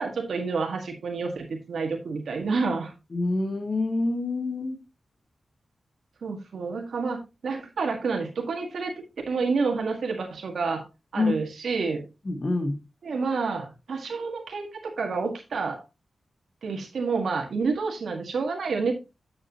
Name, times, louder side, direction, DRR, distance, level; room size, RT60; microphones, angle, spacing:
voice 1, 0.0-2.9 6.2-8.9 9.3-10.8 11.1-12.0 13.0-15.8 16.6-18.9, right 4 dB, 80° right, 3 dB, 1.7 m, -29 dB
voice 2, 3.1-4.8 11.2-11.4 12.2-12.8, left 2 dB, 35° left, 5 dB, 1.2 m, -26 dB
9.5 x 7.5 x 2.9 m, 0.26 s
wide cardioid pair, 130°, 0 cm